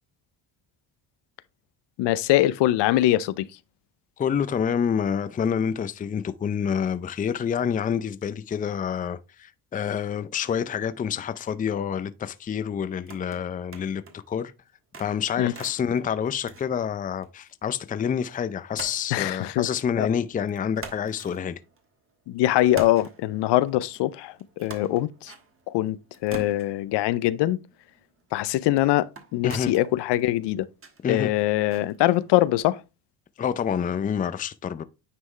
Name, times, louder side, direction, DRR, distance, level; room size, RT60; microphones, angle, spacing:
voice 1, 2.0-3.5 15.4-15.5 19.1-19.7 20.0-20.1 22.3-24.3 24.6-25.3 25.7-27.6 28.3-30.7 31.1-32.8, left 15 dB, 65° left, 0.6 m, -23 dB
voice 2, 4.2-14.0 14.3-14.5 15.0-21.6 29.4-29.7 31.0-31.3 33.4-34.8, left 7 dB, 20° left, 0.4 m, -27 dB
sound 1, 12.9-14.3 14.7-17.5 17.8-17.9 18.8-20.1 20.5-22.1 22.5-32.5, right 4 dB, 30° right, 1.3 m, -45 dB
9.6 x 3.5 x 3.2 m
cardioid pair, 90°, 45 cm